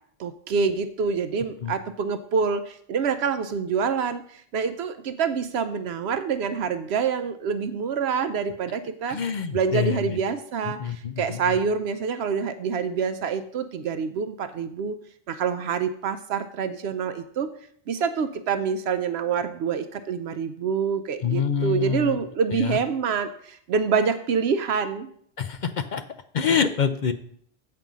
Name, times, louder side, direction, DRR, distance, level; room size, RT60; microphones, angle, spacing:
voice 1, 0.2-9.2 9.5-15.0 15.3-17.5 17.9-25.1, right 6 dB, 75° right, 10 dB, 0.8 m, -26 dB
voice 2, 9.1-10.2 10.7-11.4 21.2-22.2 22.5-22.8 25.4-26.0 26.3-27.1, left 7 dB, 55° left, 10 dB, 0.6 m, -26 dB
7.6 x 5.2 x 7.2 m, 0.63 s
omnidirectional pair, 1.1 m